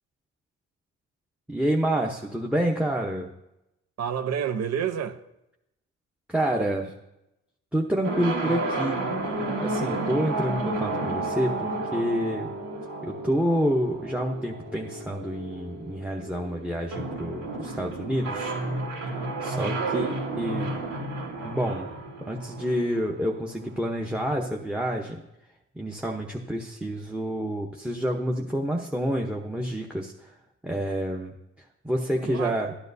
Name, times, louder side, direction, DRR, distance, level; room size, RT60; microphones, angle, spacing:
voice 1, 1.5-3.3 6.3-6.9 7.7-9.0 9.6-12.5 13.0-18.5 19.4-20.1 20.4-20.8 21.4-21.9 22.3-25.2 25.8-30.1 30.6-31.3 31.8-32.7, equal, 5° right, 0.8 m, -28 dB
voice 2, 4.0-5.2 19.9-20.1 32.2-32.8, right 8 dB, 60° right, 0.7 m, -30 dB
sound 1, 8.0-23.8, right 2 dB, 90° right, 2.9 m, -32 dB
13.5 x 10.0 x 2.7 m
cardioid pair, 90°, 30 cm